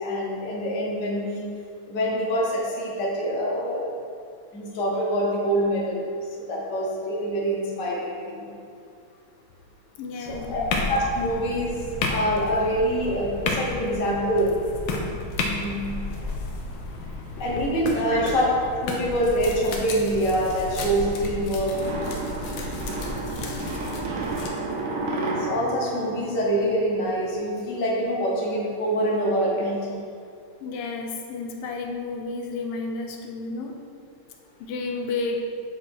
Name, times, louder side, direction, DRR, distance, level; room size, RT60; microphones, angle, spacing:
voice 1, 0.0-1.5 1.9-3.8 4.5-6.0 6.5-8.5 10.3-14.5 15.5-16.0 17.4-18.5 18.8-21.8 23.1-23.2 25.5-30.0, equal, 45° left, -3 dB, 1.2 m, -25 dB
voice 2, 10.0-10.8 18.1-18.3 30.6-33.9 34.6-35.5, left 3 dB, 85° left, 3 dB, 1.5 m, -31 dB
sound 1, 10.3-24.5, left 3 dB, 70° left, 1.4 m, -32 dB
sound 2, 21.7-27.1, right 2 dB, 75° right, 0.8 m, -31 dB
8.3 x 2.8 x 4.4 m, 2.4 s
omnidirectional pair, 2.4 m